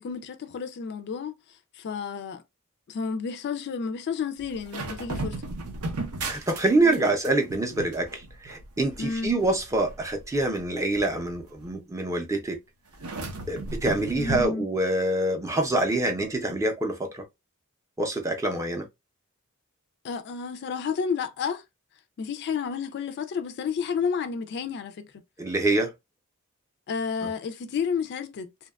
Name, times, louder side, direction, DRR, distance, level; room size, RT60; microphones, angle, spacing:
voice 1, 0.0-2.4 2.9-5.4 6.8-7.1 9.0-9.4 14.1-14.7 20.0-21.6 22.2-25.1 26.9-28.5, left 6 dB, 50° left, 0.3 m, -31 dB
sound 1, 4.4-7.0 7.2-11.7 12.9-14.5, right 2 dB, 90° right, 0.6 m, -36 dB
voice 2, 6.2-12.6 13.5-17.2 18.0-18.9 25.4-25.9, right 2 dB, 15° right, 0.5 m, -26 dB
2.7 x 2.2 x 2.2 m
head